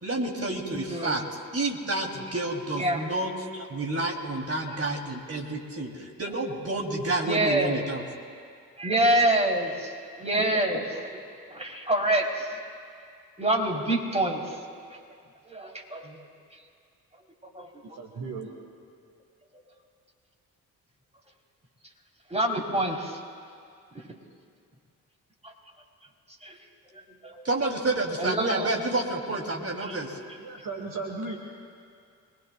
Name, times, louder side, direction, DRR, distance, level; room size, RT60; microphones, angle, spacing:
voice 1, 0.0-1.2 1.5-8.0 16.0-16.2 27.5-30.2, right 2 dB, 35° right, 0 dB, 3.3 m, -29 dB
voice 2, 7.2-7.8 8.8-9.9 10.2-11.0 11.5-12.5 13.4-14.6 15.5-16.1 17.5-17.7 22.3-23.2 25.4-25.5 26.4-26.6 27.2-27.3 28.2-28.7 29.9-30.0, right 1 dB, 15° right, 0 dB, 3.9 m, -26 dB
voice 3, 18.0-18.5 30.4-31.4, right 4 dB, 50° right, 0 dB, 2.3 m, -35 dB
26.0 x 20.5 x 2.4 m, 2.3 s
hypercardioid pair, 40°, 41 cm